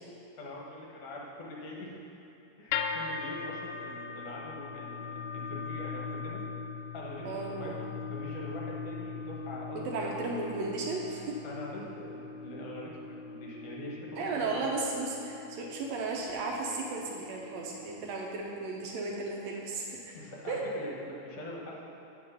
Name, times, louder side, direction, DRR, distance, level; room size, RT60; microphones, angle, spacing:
voice 1, 0.4-2.0 2.6-6.4 6.9-10.2 11.4-14.7 20.1-21.8, left 1 dB, 60° left, -3 dB, 1.8 m, -43 dB
sound 1, 2.7-18.9, left 5 dB, 85° left, 2.1 m, -40 dB
voice 2, 7.2-7.8 9.7-11.4 14.2-20.2 20.5-20.6, right 3 dB, 75° right, -1 dB, 1.6 m, -35 dB
7.4 x 5.8 x 5.4 m, 2.9 s
omnidirectional pair, 3.6 m